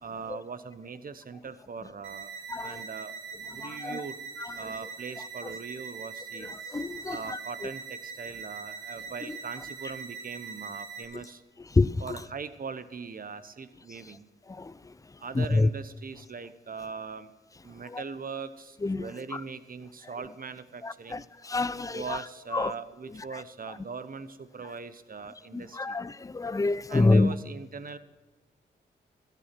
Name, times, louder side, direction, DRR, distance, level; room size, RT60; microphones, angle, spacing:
voice 1, 0.0-2.3 2.6-3.2 3.5-4.2 4.6-6.5 7.1-11.4 12.0-14.2 15.2-17.3 17.6-21.2 21.9-26.0 26.9-28.0, right 5 dB, 45° right, 1.0 m, -40 dB
sound 1, 2.0-11.0, right 5 dB, 80° right, 2.7 m, -42 dB
voice 2, 2.5-2.8 3.6-4.1 4.4-4.7 6.4-7.7 9.3-9.4 11.7-12.0 14.5-14.7 15.3-15.7 17.9-18.0 18.8-19.4 20.8-22.2 22.5-22.7 23.3-23.4 25.5-27.3, left 3 dB, 15° left, 0.5 m, -27 dB
14.0 x 9.1 x 6.0 m
supercardioid pair, 40°, 20 cm